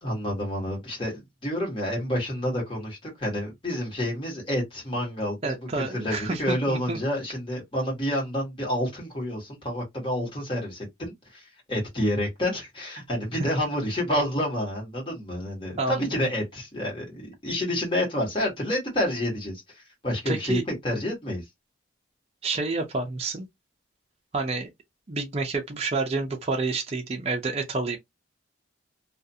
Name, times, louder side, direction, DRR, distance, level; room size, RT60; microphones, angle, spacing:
voice 1, 0.0-21.4, left 1 dB, 25° left, 1.2 m, -29 dB
voice 2, 5.4-7.0 13.4-13.5 15.8-16.0 20.3-20.6 22.4-23.5 24.3-24.7 25.1-28.0, right 3 dB, 30° right, 0.5 m, -29 dB
2.4 x 2.4 x 2.6 m
head